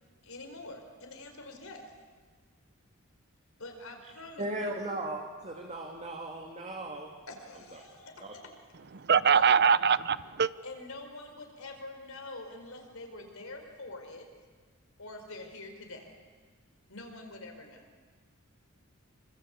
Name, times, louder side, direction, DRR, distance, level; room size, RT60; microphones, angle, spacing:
voice 1, 0.2-1.9 3.6-4.7 7.3-8.5 9.3-9.4 10.6-14.3 15.0-16.1 16.9-17.8, left 2 dB, 70° left, 4 dB, 5.0 m, -45 dB
voice 2, 4.4-7.1 7.7-7.8 8.2-8.3, right 1 dB, 35° right, 1 dB, 2.6 m, -37 dB
voice 3, 9.1-10.5, right 6 dB, 50° right, 17 dB, 0.8 m, -22 dB
26.5 x 24.5 x 8.7 m, 1.5 s
head